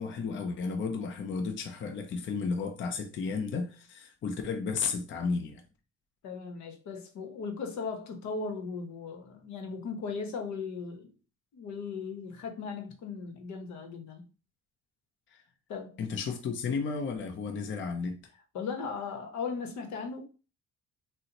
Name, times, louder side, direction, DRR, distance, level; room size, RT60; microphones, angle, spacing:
voice 1, 0.0-5.6 15.3-15.4 16.0-18.2, left 5 dB, 40° left, 0.5 m, -33 dB
voice 2, 6.2-11.1 11.5-14.2 15.7-16.0 18.5-20.2, left 5 dB, 75° left, 0.8 m, -37 dB
3.8 x 2.1 x 2.8 m
cardioid pair, 95°, 29 cm